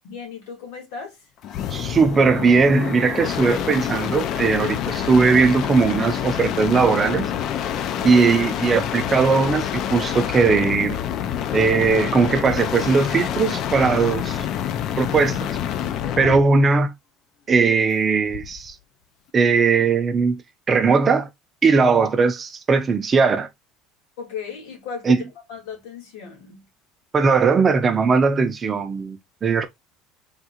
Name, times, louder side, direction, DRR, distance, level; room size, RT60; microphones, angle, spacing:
voice 1, 0.0-1.3 8.0-8.3 16.0-16.4 21.7-21.9 24.2-26.6, left 6 dB, 85° left, 1.9 m, -36 dB
sound 1, 1.4-16.5 18.3-18.7, left 10 dB, 45° left, 0.3 m, -27 dB
voice 2, 1.7-7.3 8.0-11.0 11.5-14.5 15.0-15.5 16.2-16.9 17.5-18.7 19.3-20.4 20.7-21.3 21.6-23.5 25.1-25.2 27.1-29.7, right 4 dB, 20° right, 0.5 m, -19 dB
3.6 x 2.3 x 2.8 m
cardioid pair, 150°, 0 cm